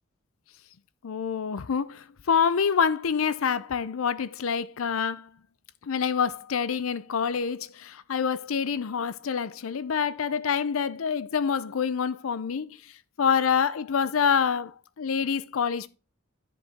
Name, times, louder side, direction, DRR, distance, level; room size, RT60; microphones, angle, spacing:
voice 1, 1.0-5.3 5.8-12.8 13.2-15.9, left 6 dB, 85° left, 0.5 m, -26 dB
10.5 x 4.9 x 3.5 m
head